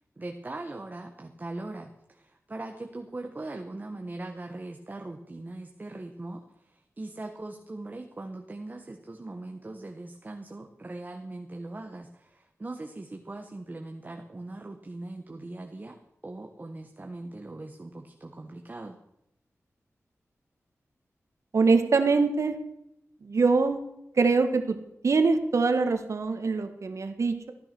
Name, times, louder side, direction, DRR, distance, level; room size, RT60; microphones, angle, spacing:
voice 1, 0.2-16.0 16.2-19.0, right 2 dB, 35° right, 3 dB, 1.4 m, -40 dB
voice 2, 21.5-22.6 23.2-23.8 24.2-24.8 25.0-27.5, right 4 dB, 65° right, 7 dB, 1.7 m, -23 dB
15.0 x 10.5 x 6.1 m, 0.84 s
wide cardioid pair, 70°, 5 cm